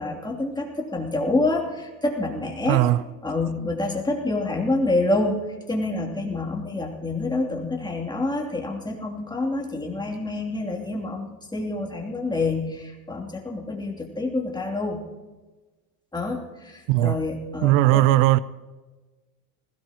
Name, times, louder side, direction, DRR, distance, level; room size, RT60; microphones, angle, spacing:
voice 1, 0.0-2.8 3.2-15.0 16.1-18.0, left 2 dB, 10° left, 2.9 m, -27 dB
voice 2, 2.7-3.0 16.9-17.2 17.6-18.4, right 16 dB, 85° right, 0.7 m, -18 dB
20.0 x 17.0 x 3.0 m
supercardioid pair, 110°, 39 cm